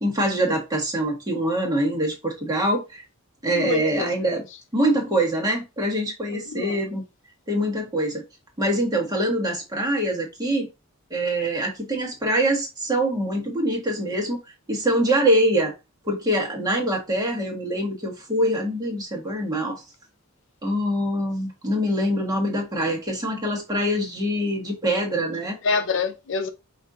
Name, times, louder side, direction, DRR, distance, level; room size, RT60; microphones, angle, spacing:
voice 1, 0.0-3.0 3.4-4.4 4.7-7.0 7.5-8.2 8.6-10.7 11.1-14.4 14.7-15.7 16.0-19.8 20.6-25.6, right 1 dB, 15° right, 1.3 m, -24 dB
voice 2, 3.5-4.1 6.3-6.8 25.6-26.5, left 5 dB, 55° left, 0.5 m, -26 dB
5.5 x 2.6 x 3.6 m
head